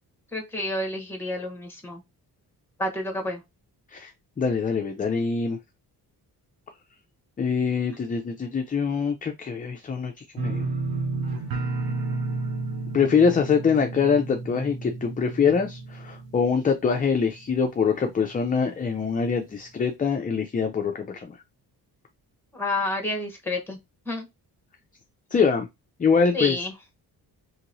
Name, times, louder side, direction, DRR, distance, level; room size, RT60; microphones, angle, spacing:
voice 1, 0.3-2.0 2.8-3.4 22.5-23.8 24.1-24.3 26.3-26.7, left 1 dB, 5° left, 0.9 m, -29 dB
voice 2, 4.4-5.6 7.4-10.7 12.9-21.4 25.3-25.7 26.0-26.6, left 6 dB, 25° left, 0.3 m, -24 dB
sound 1, 10.4-17.2 17.5-18.1 18.4-18.5, right 3 dB, 65° right, 0.8 m, -32 dB
3.0 x 2.9 x 2.5 m
cardioid pair, 135°, 39 cm